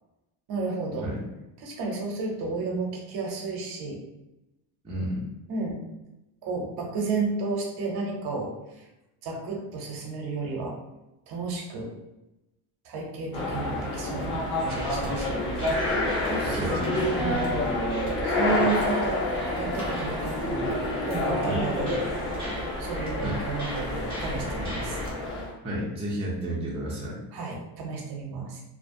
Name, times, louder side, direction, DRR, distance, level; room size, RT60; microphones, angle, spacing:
voice 1, 0.5-1.1 1.6-4.0 5.5-5.8 6.4-8.9 9.2-10.8 11.3-12.0 12.8-15.5 16.3-16.9 17.2-17.7 18.2-19.3 19.6-22.1 22.8-25.0 27.3-28.6, right 4 dB, 50° right, 0 dB, 0.7 m, -32 dB
voice 2, 4.8-5.3 16.4-16.8 21.4-21.6 23.2-23.4 25.6-27.2, right 1 dB, 15° right, -5 dB, 0.4 m, -32 dB
sound 1, 13.3-25.5, left 1 dB, 50° left, 1.1 m, -28 dB
sound 2, 14.6-25.1, equal, 10° left, 1.0 m, -40 dB
2.5 x 2.1 x 2.6 m, 0.94 s
cardioid pair, 130°, 47 cm